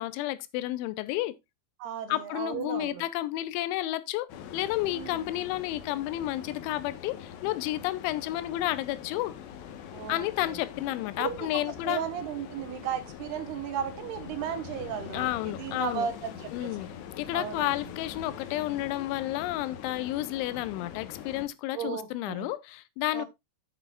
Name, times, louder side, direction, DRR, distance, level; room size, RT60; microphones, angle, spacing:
voice 1, 0.0-1.3 2.1-9.3 10.1-12.0 15.1-16.1 16.5-23.3, left 15 dB, 90° left, 3.2 m, -31 dB
voice 2, 1.8-3.0 4.9-5.3 9.9-10.6 11.2-11.5 11.8-16.9 17.3-17.7 21.7-22.5 23.1-23.3, right 9 dB, 70° right, 2.9 m, -35 dB
sound 1, 4.3-21.5, left 8 dB, 75° left, 3.4 m, -43 dB
9.9 x 9.2 x 2.4 m
omnidirectional pair, 5.3 m